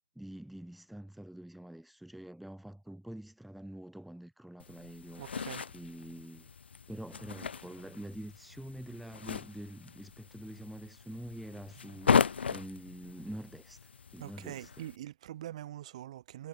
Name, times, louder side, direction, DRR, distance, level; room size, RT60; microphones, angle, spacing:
voice 1, 0.2-5.3 5.7-6.5 6.9-12.2 12.4-14.9, right 1 dB, ahead, 3.9 m, -46 dB
sound 1, 4.6-15.0, left 6 dB, 75° left, 1.1 m, -36 dB
voice 2, 5.2-5.7 14.2-16.5, right 13 dB, 35° right, 2.5 m, -44 dB
hypercardioid pair, 165°, 6 cm